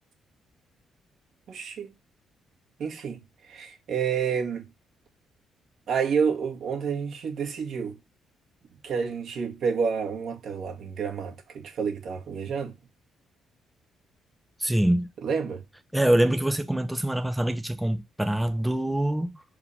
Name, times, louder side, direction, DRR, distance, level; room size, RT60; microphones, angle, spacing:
voice 1, 1.5-1.9 2.8-3.2 3.5-4.7 5.9-7.9 8.8-12.7 15.2-15.6, right 6 dB, 65° right, 1.8 m, -29 dB
voice 2, 14.6-15.1 15.9-19.4, right 1 dB, 5° right, 0.6 m, -24 dB
5.5 x 4.3 x 5.6 m
cardioid pair, 90°, 0 cm